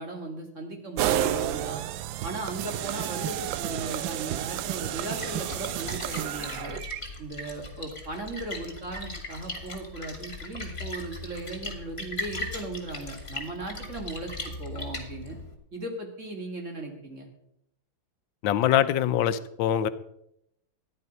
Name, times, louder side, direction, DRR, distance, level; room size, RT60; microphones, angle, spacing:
voice 1, 0.0-1.8 2.2-6.8 7.2-15.4 15.7-17.3, right 2 dB, 40° right, 3 dB, 2.5 m, -37 dB
sound 1, 1.0-7.0, right 11 dB, 85° right, 1.4 m, -31 dB
Splash splatter, 4.9-15.5, left 2 dB, 35° left, 2.2 m, -38 dB
voice 2, 18.4-19.9, left 10 dB, 85° left, 13 dB, 1.4 m, -23 dB
14.0 x 10.0 x 5.4 m, 0.78 s
omnidirectional pair, 2.0 m